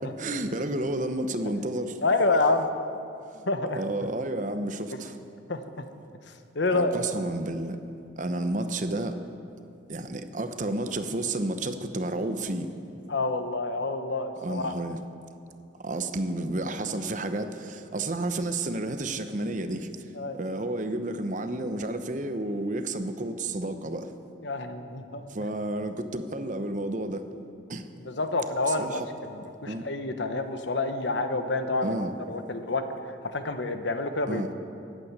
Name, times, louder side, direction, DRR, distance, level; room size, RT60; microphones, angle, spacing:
voice 1, 0.2-2.0 3.3-3.4 3.8-5.1 6.7-7.8 8.2-9.2 9.9-12.8 14.4-15.0 15.8-19.9 20.4-24.1 25.3-27.2 27.7-27.8 28.7-29.1 29.6-29.9 31.8-32.1 34.3-34.5, right 2 dB, 40° right, 9 dB, 0.8 m, -31 dB
voice 2, 2.0-2.7 3.5-3.8 4.9-5.0 5.5-5.8 6.5-6.9 13.1-14.7 20.1-20.4 24.4-25.2 28.0-32.0 32.3-34.5, left 2 dB, 65° left, 8 dB, 1.0 m, -28 dB
14.5 x 8.9 x 9.6 m, 2.6 s
head